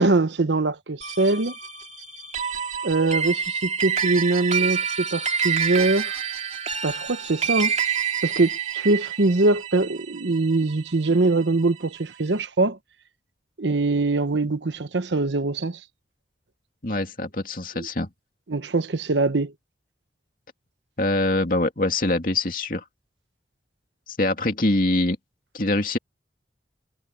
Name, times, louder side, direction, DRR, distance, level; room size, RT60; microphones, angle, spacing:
voice 1, 0.0-1.5 2.8-6.2 6.8-7.7 8.2-12.8 13.6-15.8 17.7-17.9 18.5-19.5, right 2 dB, 85° right, 1.0 m, -23 dB
sound 1, 1.0-11.6, right 7 dB, 40° right, 3.1 m, -28 dB
voice 2, 16.8-18.1 21.0-22.8 24.1-25.2 25.5-26.0, left 2 dB, 50° left, 2.6 m, -24 dB
head